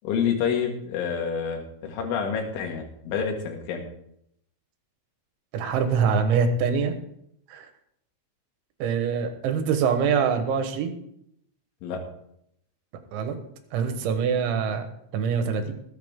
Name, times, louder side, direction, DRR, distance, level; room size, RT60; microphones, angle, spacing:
voice 1, 0.0-3.8 11.8-12.0, left 7 dB, 90° left, 2 dB, 4.2 m, -28 dB
voice 2, 5.5-6.9 7.5-7.7 8.8-10.9 13.1-13.4 13.7-14.9 15.1-15.7, right 6 dB, 80° right, 7 dB, 3.7 m, -24 dB
19.5 x 8.8 x 3.7 m, 0.74 s
omnidirectional pair, 5.3 m